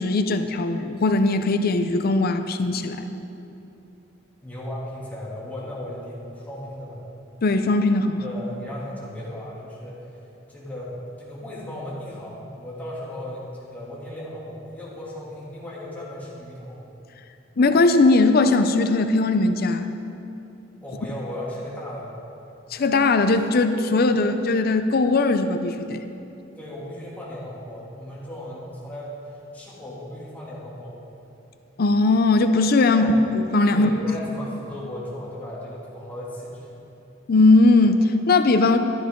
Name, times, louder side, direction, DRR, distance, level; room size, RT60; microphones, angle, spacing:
voice 1, 0.0-3.1 7.4-8.2 17.6-19.9 22.7-26.0 31.8-33.9 37.3-38.8, left 3 dB, 50° left, 9 dB, 0.5 m, -19 dB
voice 2, 4.4-7.0 8.2-10.1 10.5-16.8 20.8-22.1 26.5-30.9 32.9-33.2 33.7-36.7, left 1 dB, 10° left, -8 dB, 2.8 m, -36 dB
13.0 x 12.5 x 3.8 m, 2.8 s
head